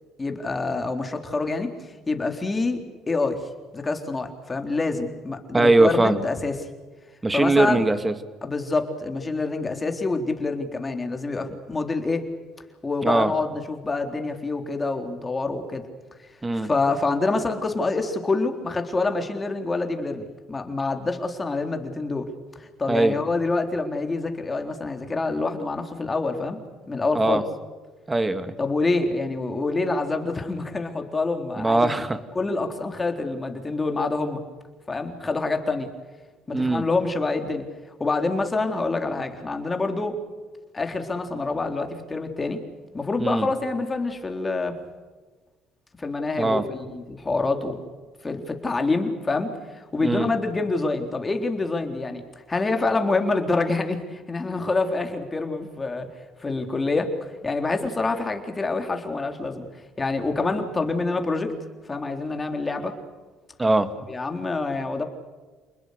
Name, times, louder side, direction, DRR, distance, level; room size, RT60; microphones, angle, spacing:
voice 1, 0.2-1.7 2.1-6.7 7.3-7.9 8.4-12.3 12.8-15.8 16.6-22.3 22.6-26.6 26.9-27.4 28.6-31.9 32.4-34.4 34.9-35.9 36.5-37.6 38.0-40.2 40.7-42.6 42.9-44.8 46.0-47.8 48.2-52.2 52.5-56.1 56.4-59.7 60.0-61.5 61.9-63.0 64.1-65.0, left 3 dB, 20° left, 5 dB, 3.7 m, -26 dB
voice 2, 5.5-6.2 7.2-8.1 13.0-13.3 16.4-16.7 22.9-23.1 27.1-27.4 28.1-28.5 31.6-32.2 36.5-36.8 43.2-43.5 46.4-46.6 50.0-50.3 63.6-63.9, right 2 dB, 15° right, 11 dB, 2.1 m, -20 dB
28.5 x 21.0 x 6.6 m, 1.4 s
cardioid pair, 100°, 0 cm